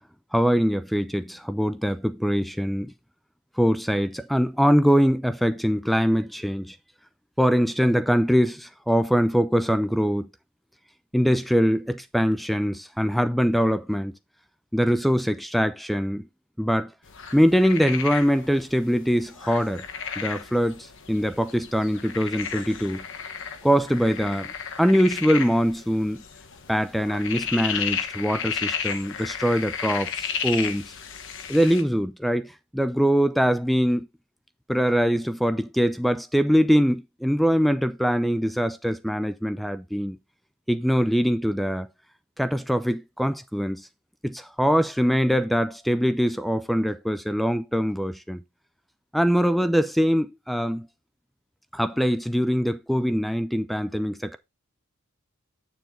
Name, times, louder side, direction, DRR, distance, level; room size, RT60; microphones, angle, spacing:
voice 1, 0.3-2.9 3.6-6.8 7.4-10.3 11.1-14.1 14.7-16.3 16.6-16.9 17.3-19.9 20.2-23.0 23.6-24.5 24.8-26.2 26.7-30.9 31.5-34.1 34.7-40.2 40.7-41.9 42.4-43.9 44.2-48.4 49.1-50.9 51.7-54.4, equal, ahead, 0.4 m, -23 dB
sound 1, 17.1-31.8, left 7 dB, 60° left, 1.3 m, -34 dB
7.8 x 6.9 x 3.7 m
head